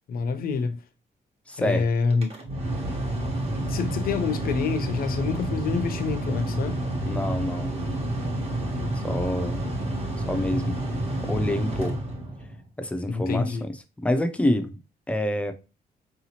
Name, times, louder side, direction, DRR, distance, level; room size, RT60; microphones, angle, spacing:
voice 1, 0.1-0.8 1.6-2.3 3.7-6.8 13.1-13.6, left 5 dB, 65° left, 0.5 m, -27 dB
voice 2, 1.5-1.9 7.1-7.8 9.0-9.6 10.3-10.7 11.2-11.9 12.8-13.7 14.0-14.8 15.1-15.5, left 1 dB, 10° left, 0.4 m, -26 dB
Mechanical fan, 2.1-12.6, right 1 dB, 40° right, 1.0 m, -29 dB
4.7 x 2.8 x 2.8 m
wide cardioid pair, 175°, 16 cm